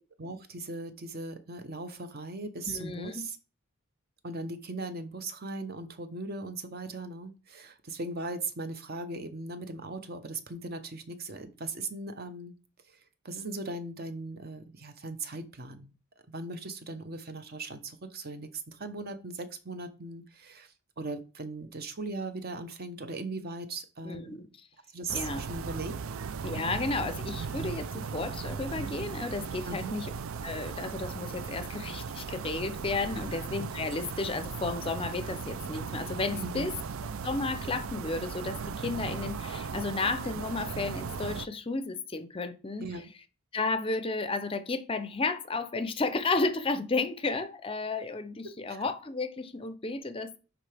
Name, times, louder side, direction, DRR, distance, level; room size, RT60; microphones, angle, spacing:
voice 1, 0.2-3.4 4.2-12.5 12.9-13.0 13.2-15.9 16.3-24.4 24.9-25.9 29.6-30.0 33.1-33.4 36.4-36.7 42.8-43.1 48.7-48.8, right 2 dB, 45° right, 0.8 m, -38 dB
voice 2, 2.7-3.3 24.0-24.5 25.1-25.4 26.4-30.1 30.4-36.7 37.2-42.9 43.5-50.4, left 3 dB, 25° left, 0.5 m, -33 dB
sound 1, 25.1-41.5, right 5 dB, 70° right, 0.4 m, -37 dB
10.0 x 3.7 x 3.4 m
head